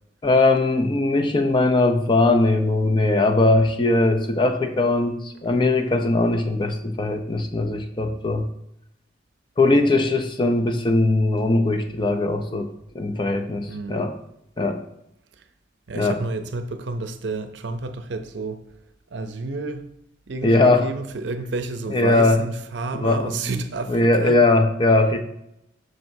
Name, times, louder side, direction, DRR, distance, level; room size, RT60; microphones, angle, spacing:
voice 1, 0.2-8.5 9.6-12.7 12.9-14.2 14.6-14.8 15.9-16.2 20.4-20.9 21.9-22.4 22.9-23.5 23.9-25.2, left 2 dB, 25° left, 0.6 m, -20 dB
voice 2, 13.7-14.0 15.9-18.6 19.1-19.9 20.3-24.4, right 3 dB, 70° right, 0.6 m, -30 dB
7.6 x 6.3 x 2.7 m
head